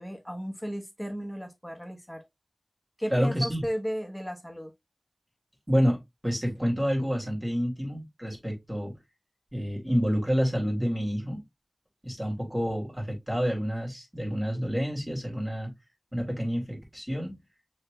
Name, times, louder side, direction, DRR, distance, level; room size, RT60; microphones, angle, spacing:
voice 1, 0.0-2.2 3.0-4.7, equal, 10° left, 1.4 m, -34 dB
voice 2, 3.1-3.6 5.7-8.9 9.5-11.4 12.0-15.7 16.1-17.4, equal, 15° right, 2.8 m, -28 dB
6.3 x 3.4 x 2.4 m
wide cardioid pair, 50°, 0 cm